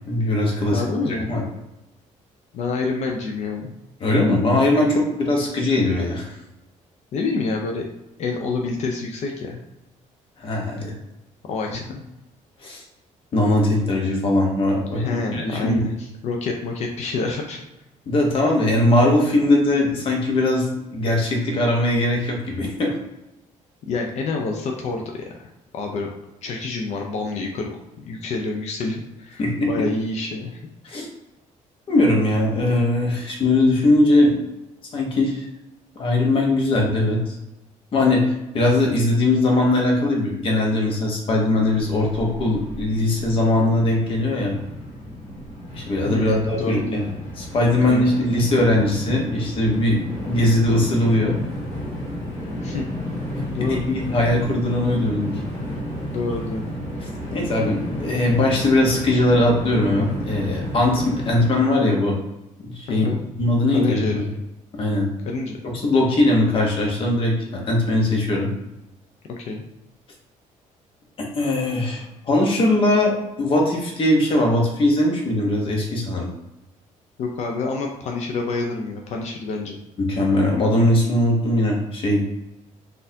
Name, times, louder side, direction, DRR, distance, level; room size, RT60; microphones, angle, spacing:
voice 1, 0.1-0.8 1.3-1.4 4.0-6.3 10.4-11.0 12.6-12.8 13.3-15.9 18.1-20.7 20.9-22.9 29.4-29.9 30.8-31.1 31.9-34.4 34.9-35.5 36.0-37.4 37.9-44.5 45.7-47.1 47.4-51.4 53.4-55.3 57.3-62.2 62.6-63.1 63.4-64.2 64.7-65.1 65.8-68.5 71.3-76.3 80.0-82.3, left 1 dB, 40° left, 0 dB, 0.9 m, -20 dB
voice 2, 0.7-1.3 2.5-3.8 7.1-7.8 8.2-9.6 11.4-12.0 14.9-15.9 16.2-17.6 23.8-25.4 25.7-26.1 26.4-30.6 46.0-47.1 47.8-48.5 52.6-52.8 53.5-53.9 56.1-56.8 62.9-63.3 63.7-64.2 65.2-65.6 69.3-69.7 77.2-79.8, left 3 dB, 55° left, 1 dB, 0.5 m, -28 dB
Train, 41.5-61.5, equal, 20° left, 1.3 m, -32 dB
4.0 x 2.5 x 2.7 m, 0.92 s
cardioid pair, 155°, 14 cm